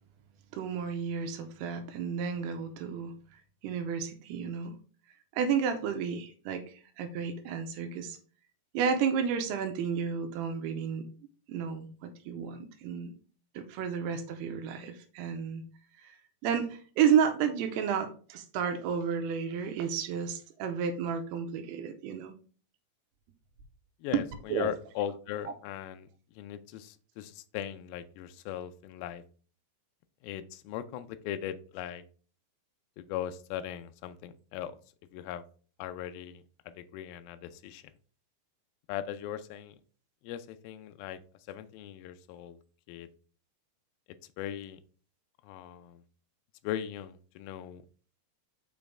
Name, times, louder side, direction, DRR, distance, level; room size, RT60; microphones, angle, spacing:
voice 1, 0.5-3.1 3.6-4.8 5.3-8.2 8.7-11.1 11.5-13.1 13.6-15.6 16.0-16.2 16.4-22.3 24.5-24.7, right 7 dB, 80° right, 7 dB, 2.6 m, -31 dB
voice 2, 24.0-29.2 30.2-32.0 33.0-34.8 35.1-35.4 35.8-37.9 38.9-39.8 40.2-41.2 41.5-42.6 42.9-43.1 44.4-44.8 45.4-46.0 46.6-47.8, left 10 dB, 90° left, 10 dB, 2.1 m, -39 dB
6.0 x 5.3 x 3.6 m, 0.41 s
omnidirectional pair, 4.9 m